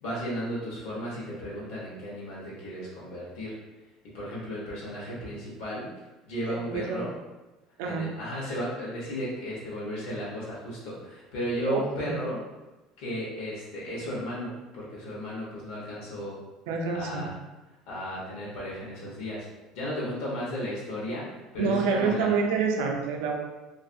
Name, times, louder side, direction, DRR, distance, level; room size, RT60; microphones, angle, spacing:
voice 1, 0.0-3.6 4.1-5.9 6.2-7.1 7.8-12.4 13.0-16.4 16.9-17.3 17.9-19.5 19.7-22.3, equal, 70° left, -6 dB, 0.8 m, -34 dB
voice 2, 6.5-7.0 7.8-8.1 11.6-12.2 16.7-17.3 21.6-23.4, right 5 dB, 80° right, 1 dB, 0.5 m, -27 dB
2.4 x 2.4 x 2.5 m, 1.1 s
cardioid pair, 175°, 0 cm